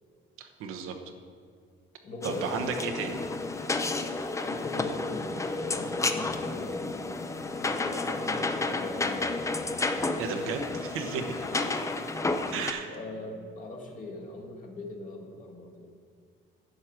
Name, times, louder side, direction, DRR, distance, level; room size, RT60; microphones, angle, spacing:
voice 1, 0.4-1.0 2.2-3.3 10.2-11.2 12.5-12.9, right 6 dB, 85° right, 5 dB, 1.0 m, -34 dB
voice 2, 2.0-3.0 4.4-7.1 7.4-9.3 9.9-10.4 10.9-12.2 12.7-15.9, left 2 dB, 40° left, 2 dB, 1.5 m, -41 dB
sound 1, 2.2-12.7, left 3 dB, 15° left, 0.5 m, -31 dB
11.0 x 6.4 x 5.9 m, 2.1 s
cardioid pair, 140°, 21 cm